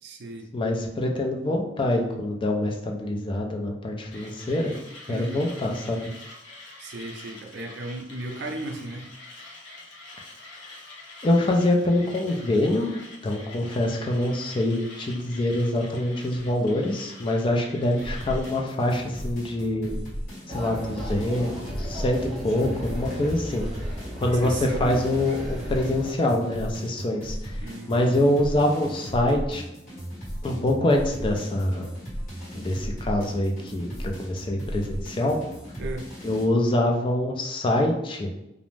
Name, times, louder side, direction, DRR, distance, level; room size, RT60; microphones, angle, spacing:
voice 1, 0.0-0.5 5.1-5.5 6.8-9.1 17.8-18.3 24.4-25.0 27.6-28.1 35.8-36.1, right 2 dB, 60° right, 3 dB, 0.4 m, -36 dB
voice 2, 0.5-4.8 5.1-6.1 10.5-10.8 11.2-20.0 20.5-23.7 24.2-29.6 30.4-31.9 32.5-35.4 36.2-38.3, left 1 dB, 25° left, 2 dB, 0.4 m, -25 dB
Mechanisms, 4.1-18.6, left 2 dB, 65° left, 0.7 m, -46 dB
sound 1, 18.0-36.4, equal, 50° left, 1.3 m, -36 dB
sound 2, 20.5-26.1, equal, ahead, 0.7 m, -36 dB
2.5 x 2.0 x 3.1 m, 0.87 s
head